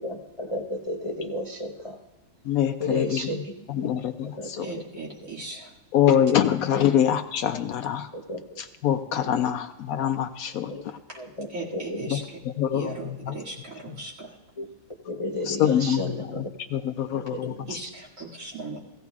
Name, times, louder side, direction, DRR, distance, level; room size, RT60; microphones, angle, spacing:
voice 1, 0.0-2.0 2.8-3.9 4.2-4.7 5.2-5.3 6.7-6.9 8.1-8.6 9.2-9.5 10.7-10.8 11.2-12.2 14.6-14.7 15.0-16.5 17.0-17.7, left 1 dB, 40° left, 1 dB, 0.4 m, -33 dB
voice 2, 2.5-3.2 3.7-4.7 5.9-8.1 8.8-11.0 12.1-12.2 12.6-12.9 13.3-13.4 15.5-16.0 16.4-16.5 16.7-17.5, left 10 dB, 70° left, 8 dB, 0.9 m, -24 dB
voice 3, 4.6-5.7 11.5-12.4 12.7-14.4 17.7-18.8, right 3 dB, 45° right, -4 dB, 2.7 m, -38 dB
16.5 x 15.5 x 2.4 m, 1.1 s
omnidirectional pair, 1.9 m